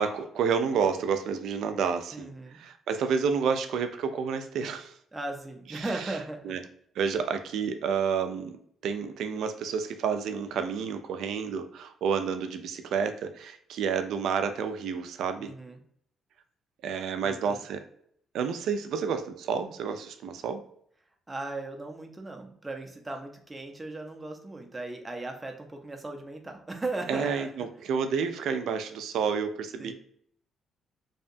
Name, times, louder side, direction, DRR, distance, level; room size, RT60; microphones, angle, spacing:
voice 1, 0.0-2.3 2.5-4.9 5.7-6.0 6.5-6.6 7.0-8.6 8.8-15.5 16.8-17.8 18.3-20.6 27.1-29.9, right 6 dB, 80° right, 8 dB, 0.3 m, -30 dB
voice 2, 2.1-2.6 5.1-6.6 15.4-15.8 17.2-17.6 21.3-27.7 29.8-29.9, right 2 dB, 15° right, 3 dB, 0.5 m, -37 dB
2.7 x 2.2 x 2.5 m, 0.65 s
cardioid pair, 90°, 0 cm